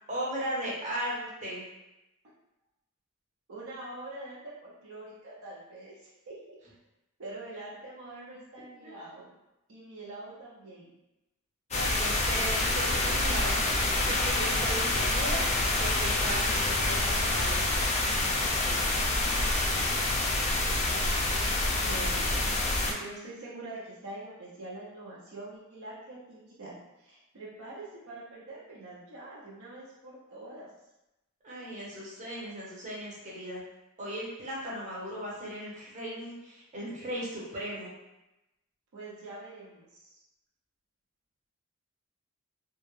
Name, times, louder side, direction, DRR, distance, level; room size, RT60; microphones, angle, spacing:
voice 1, 0.1-1.6 8.8-8.9 11.7-15.4 15.8-19.3 31.4-33.6 34.0-37.9, right 1 dB, 35° right, -5 dB, 0.7 m, -37 dB
voice 2, 3.5-6.6 7.2-9.3 9.7-10.9 19.8-20.3 20.6-30.7 38.9-40.2, right 2 dB, 70° right, -5 dB, 0.5 m, -45 dB
sound 1, 11.7-22.9, left 2 dB, 30° left, 0.3 m, -27 dB
2.2 x 2.0 x 3.0 m, 0.96 s
head